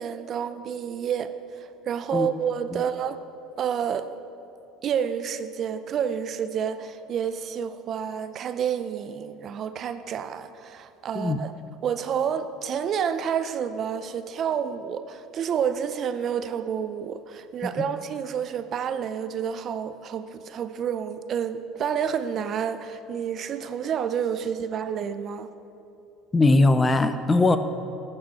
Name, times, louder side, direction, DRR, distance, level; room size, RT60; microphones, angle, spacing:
voice 1, 0.0-3.2 3.6-4.1 4.8-11.5 11.8-25.5, right 8 dB, 40° right, 11 dB, 0.5 m, -29 dB
voice 2, 26.3-27.6, left 2 dB, 15° left, 10 dB, 0.6 m, -19 dB
15.0 x 8.8 x 4.2 m, 2.7 s
cardioid pair, 125°, 0 cm